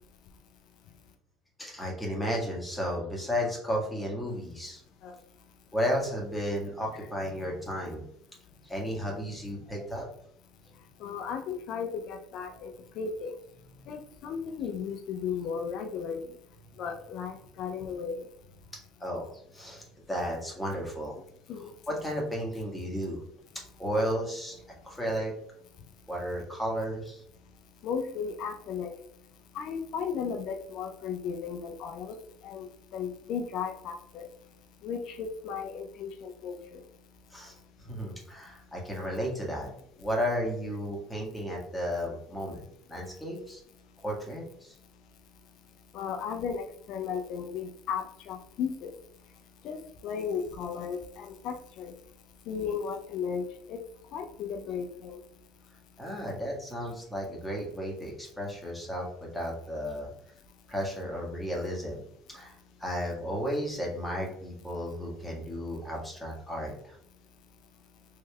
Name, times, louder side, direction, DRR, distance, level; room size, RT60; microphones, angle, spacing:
voice 1, 1.6-4.8 5.7-8.0 8.6-10.1 13.8-13.9 19.0-21.2 21.9-23.2 23.8-24.5 24.8-25.3 26.1-27.2 37.3-37.5 37.8-39.7 40.0-43.6 44.0-44.7 56.0-60.1 60.7-62.0 62.3-62.5 62.8-67.0, equal, 10° left, -2 dB, 1.4 m, -33 dB
voice 2, 11.0-13.4 13.9-16.2 16.8-18.3 21.5-21.7 27.8-28.9 29.5-32.2 32.4-34.3 34.8-36.8 45.9-48.9 49.6-49.8 50.0-51.9 52.5-53.8 54.1-55.2, left 6 dB, 65° left, 5 dB, 0.4 m, -35 dB
3.2 x 3.1 x 2.2 m, 0.68 s
supercardioid pair, 80°, 0 cm